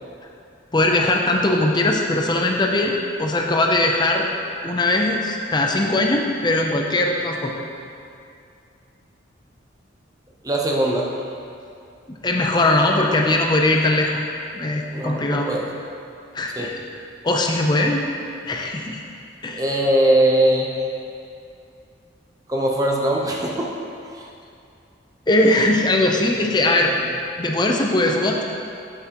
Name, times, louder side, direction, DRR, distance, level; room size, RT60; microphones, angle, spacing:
voice 1, 0.7-4.3 4.6-7.5 12.1-14.1 14.5-15.5 16.3-16.8 17.2-18.1 18.5-19.0 19.4-19.8 25.3-26.9 27.4-28.4, left 2 dB, 20° left, 1 dB, 0.5 m, -20 dB
voice 2, 10.4-11.1 14.9-15.6 16.6-16.7 19.5-20.9 22.5-23.7 24.0-24.3, right 1 dB, 20° right, -1 dB, 0.7 m, -21 dB
7.9 x 7.9 x 2.9 m, 2.5 s
head